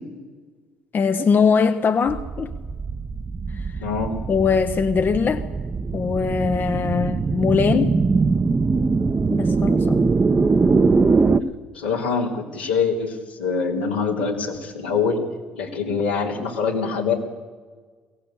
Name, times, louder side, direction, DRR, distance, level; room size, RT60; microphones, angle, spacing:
voice 1, 0.9-2.5 3.5-3.7 4.3-5.5 5.9-8.0 9.3-10.1, left 5 dB, 40° left, 9 dB, 1.0 m, -21 dB
sound 1, 2.1-11.4, right 4 dB, 30° right, 1.0 m, -22 dB
voice 2, 3.8-4.1 11.7-15.2 15.5-17.1, left 5 dB, 85° left, -3 dB, 3.3 m, -24 dB
22.5 x 17.0 x 8.4 m, 1.4 s
figure-of-eight pair, 50°, 5 cm